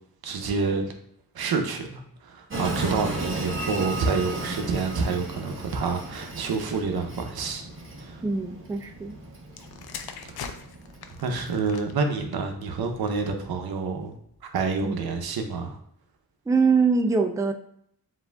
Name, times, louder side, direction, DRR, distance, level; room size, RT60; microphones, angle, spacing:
voice 1, 0.2-0.9 1.3-7.6 8.0-8.2 10.2-10.6 11.2-14.1 14.5-15.8, right 4 dB, 90° right, 4 dB, 0.7 m, -28 dB
Train, 2.5-11.5, right 2 dB, 35° right, 1.0 m, -35 dB
voice 2, 8.2-9.1 14.8-14.9 16.5-17.5, right 4 dB, 10° right, 4 dB, 0.4 m, -23 dB
sound 1, 9.5-13.3 14.1-14.4, left 7 dB, 90° left, 0.5 m, -42 dB
7.4 x 2.6 x 2.2 m, 0.68 s
wide cardioid pair, 100°, 36 cm